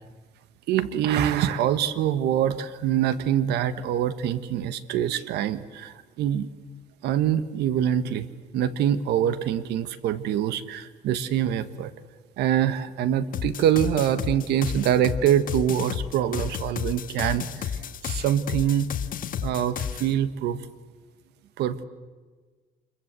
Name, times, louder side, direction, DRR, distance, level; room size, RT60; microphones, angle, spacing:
voice 1, 0.7-6.5 7.0-8.3 8.5-11.9 12.4-18.9 19.4-20.6 21.6-21.8, right 10 dB, 80° right, 13 dB, 1.5 m, -25 dB
sound 1, 13.3-20.1, left 8 dB, 55° left, 1.5 m, -32 dB
26.5 x 22.5 x 8.2 m, 1.4 s
cardioid pair, 110°, 17 cm